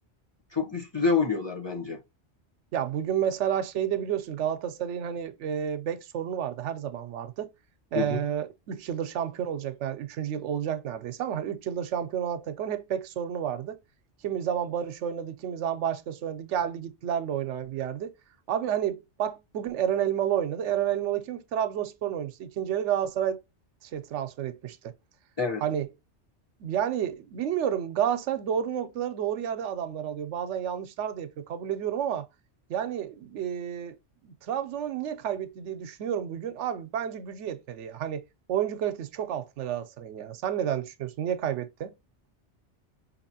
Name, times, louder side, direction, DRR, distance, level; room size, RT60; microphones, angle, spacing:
voice 1, 0.5-2.0 7.9-8.2 25.4-25.6, left 5 dB, 30° left, 0.6 m, -27 dB
voice 2, 2.7-7.5 7.9-13.8 14.2-18.1 18.5-23.4 23.8-24.9 25.6-25.9 26.6-32.3 32.7-34.0 34.2-38.2 38.5-41.9, right 9 dB, 80° right, 0.9 m, -30 dB
4.7 x 2.8 x 2.7 m
omnidirectional pair, 1.2 m